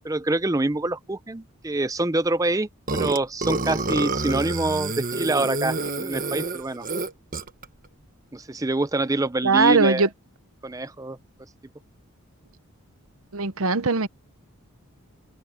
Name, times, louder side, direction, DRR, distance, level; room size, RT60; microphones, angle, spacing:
voice 1, 0.0-6.9 8.3-10.1 10.6-11.2, right 2 dB, 15° right, 0.6 m, -26 dB
Burping eructation, 2.9-7.6, right 2 dB, 40° right, 1.4 m, -28 dB
voice 2, 9.4-10.1 13.3-14.1, right 4 dB, 70° right, 0.9 m, -20 dB
open air
head